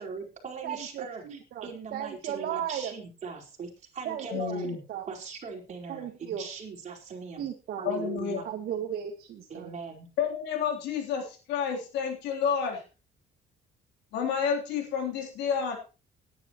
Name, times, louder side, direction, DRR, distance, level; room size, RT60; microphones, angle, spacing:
voice 1, 0.0-4.7 5.1-7.5 7.8-8.5 9.5-10.1, right 5 dB, 45° right, 0 dB, 4.6 m, -40 dB
voice 2, 0.6-2.9 4.1-5.1 5.9-6.5 7.4-7.9 8.4-9.7, right 9 dB, 65° right, 2 dB, 1.9 m, -36 dB
voice 3, 4.3-4.8 7.9-8.4 10.2-12.8 14.1-15.8, left 7 dB, 85° left, 2 dB, 3.6 m, -30 dB
19.0 x 10.5 x 3.1 m, 0.33 s
cardioid pair, 110°, 17 cm